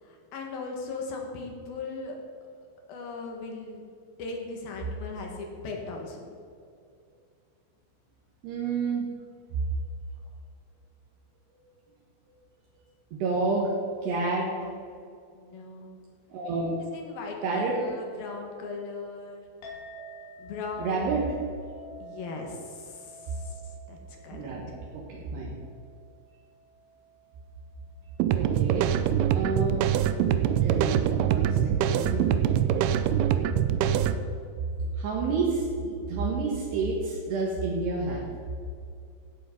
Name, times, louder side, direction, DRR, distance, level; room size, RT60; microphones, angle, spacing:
voice 1, 0.0-2.2 2.9-3.8 4.2-6.3 14.3-14.8 15.3-15.9 16.8-19.4 20.4-21.2 22.0-24.5, left 4 dB, 65° left, 1 dB, 3.2 m, -39 dB
voice 2, 8.4-9.1 13.1-13.7 14.0-14.5 16.3-16.8 17.4-17.8 20.0-20.1 20.8-21.2 24.3-25.5 28.3-28.9 29.3-29.8 30.6-32.8 34.8-38.2, right 3 dB, 70° right, -3 dB, 3.5 m, -29 dB
Chink clink, 19.6-28.3, right 2 dB, 85° left, 5.0 m, -49 dB
sound 1, 28.2-34.2, right 10 dB, 90° right, 2.2 m, -24 dB
17.0 x 7.6 x 5.4 m, 2.4 s
omnidirectional pair, 5.1 m